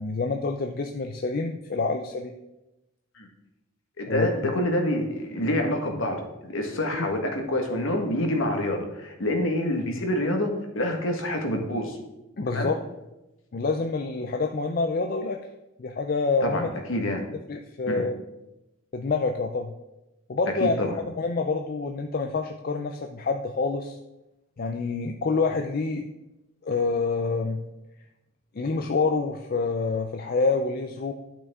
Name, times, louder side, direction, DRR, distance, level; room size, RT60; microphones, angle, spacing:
voice 1, 0.0-2.3 4.1-4.5 6.9-7.1 12.4-12.7 13.5-15.4 15.8-16.7 17.5-18.1 18.9-19.7 20.3-20.9 21.2-24.0 24.6-26.1 26.6-27.6 28.6-31.1, left 4 dB, 45° left, 5 dB, 0.4 m, -27 dB
voice 2, 4.0-12.0 12.5-12.7 16.4-17.2 17.9-18.0 20.6-21.0, left 1 dB, 65° left, 3 dB, 1.4 m, -27 dB
10.5 x 6.0 x 3.6 m, 0.95 s
head